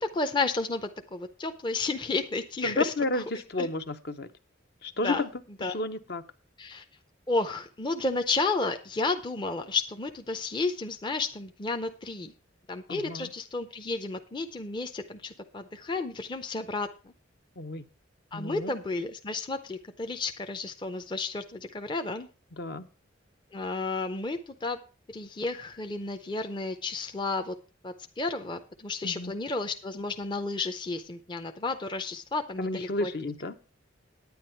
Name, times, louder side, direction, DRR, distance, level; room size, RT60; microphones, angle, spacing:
voice 1, 0.0-3.2 3.6-3.7 5.0-5.2 5.6-5.7 6.6-6.8 7.3-12.3 12.7-17.1 18.3-22.3 23.5-24.8 25.1-27.5 27.8-33.1, left 3 dB, 25° left, 6 dB, 0.6 m, -32 dB
voice 2, 2.6-4.3 4.8-5.3 5.6-6.2 12.9-13.3 17.6-17.8 18.3-18.7 22.6-22.9 29.0-29.3 32.6-33.6, left 2 dB, 55° left, 8 dB, 0.8 m, -32 dB
9.6 x 9.5 x 4.4 m, 0.34 s
head